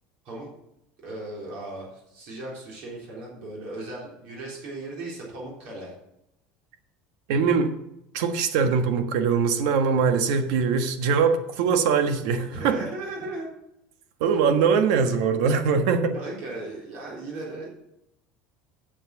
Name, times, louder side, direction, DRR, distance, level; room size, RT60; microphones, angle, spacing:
voice 1, 1.0-5.9 12.5-13.5 16.1-17.7, right 2 dB, 55° right, -4 dB, 3.9 m, -37 dB
voice 2, 7.3-7.7 8.1-12.8 14.2-16.1, right 5 dB, 70° right, 7 dB, 1.4 m, -22 dB
8.9 x 7.5 x 7.2 m, 0.83 s
cardioid pair, 170°, 3 cm